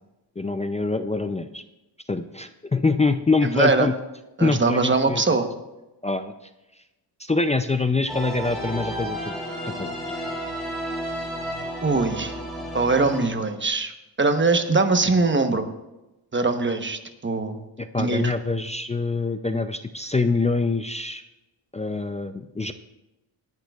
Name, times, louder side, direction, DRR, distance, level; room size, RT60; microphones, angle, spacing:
voice 1, 0.4-1.6 2.1-3.9 4.4-5.2 6.0-6.3 7.2-9.2 9.6-10.0 17.8-21.2 21.7-22.7, left 3 dB, 15° left, 9 dB, 0.4 m, -25 dB
voice 2, 3.5-3.9 4.4-5.5 11.8-12.4 12.7-13.9 14.2-15.7 16.3-17.6 18.0-18.3, right 3 dB, 25° right, 7 dB, 1.0 m, -22 dB
sound 1, 8.1-13.3, equal, ahead, 4.2 m, -32 dB
19.0 x 10.5 x 2.4 m, 1.0 s
cardioid pair, 95°, 47 cm